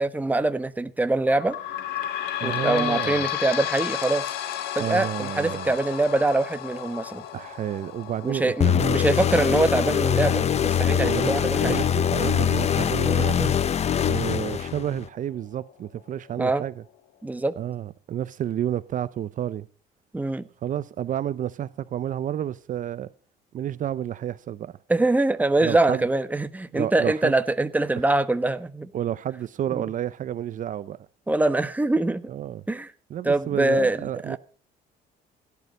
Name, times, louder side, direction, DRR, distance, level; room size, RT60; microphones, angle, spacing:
voice 1, 0.0-1.6 2.4-4.3 4.7-7.2 8.2-11.9 13.1-13.3 16.4-16.6 17.2-17.5 20.1-20.5 24.9-28.9 29.7-29.8 31.3-32.3 32.7-32.9 33.2-34.4, right 2 dB, 10° right, 1.2 m, -24 dB
sound 1, 1.3-14.4 15.0-15.1 15.4-15.5 16.3-16.4, left 11 dB, 80° left, 1.9 m, -34 dB
voice 2, 2.4-3.3 4.8-5.7 7.3-9.0 11.0-13.5 14.0-16.8 17.6-19.7 20.6-23.1 23.5-24.7 25.6-26.1 26.7-27.3 28.9-31.0 32.3-32.6 33.1-34.4, right 11 dB, 50° right, 0.7 m, -30 dB
sound 2, 8.6-15.1, left 8 dB, 40° left, 0.9 m, -23 dB
17.0 x 10.5 x 5.4 m
cardioid pair, 110°, 17 cm